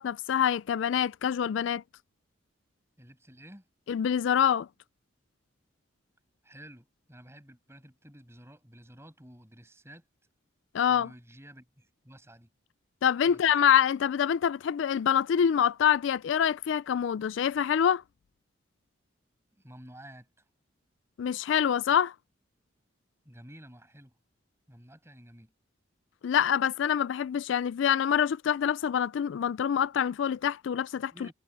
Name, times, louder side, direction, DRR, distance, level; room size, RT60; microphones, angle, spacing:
voice 1, 0.0-1.8 3.9-4.7 10.7-11.1 13.0-18.0 21.2-22.1 26.2-31.3, left 8 dB, 70° left, 0.3 m, -26 dB
voice 2, 3.0-3.6 6.4-10.1 10.9-12.5 13.3-13.4 19.5-20.3 23.2-24.1 24.7-25.5 31.1-31.3, right 1 dB, 15° right, 7.5 m, -51 dB
head